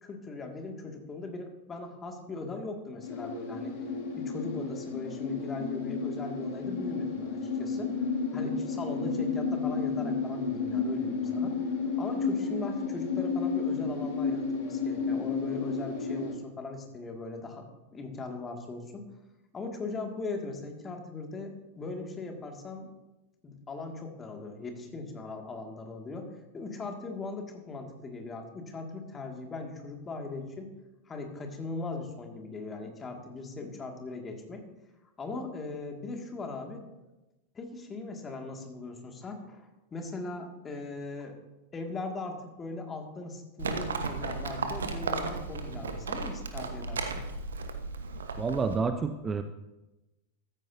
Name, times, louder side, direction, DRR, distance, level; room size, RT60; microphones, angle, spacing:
voice 1, 0.0-3.7 4.2-11.6 12.0-19.1 19.5-22.9 23.4-30.7 31.1-34.6 35.2-36.8 37.5-41.4 41.7-47.2, left 3 dB, 20° left, 3 dB, 2.2 m, -39 dB
sound 1, 3.0-16.3, left 5 dB, 50° left, 2.1 m, -32 dB
Livestock farm animals working animals, 43.6-48.8, right 4 dB, 70° right, 1.2 m, -35 dB
voice 2, 48.4-49.4, right 5 dB, 20° right, 9 dB, 0.6 m, -29 dB
14.0 x 14.0 x 2.7 m, 1.0 s
figure-of-eight pair, 90°, 0 cm